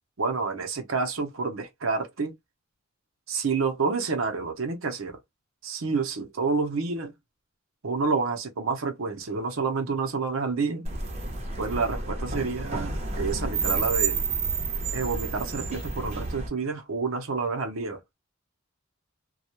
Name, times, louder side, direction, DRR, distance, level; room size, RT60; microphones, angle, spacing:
voice 1, 0.2-2.3 3.3-5.2 5.6-7.1 7.8-10.9 11.6-14.2 14.9-18.1, right 4 dB, 85° right, 0.7 m, -29 dB
sound 1, 10.8-16.5, right 4 dB, 35° right, 0.8 m, -30 dB
2.3 x 2.1 x 2.8 m
head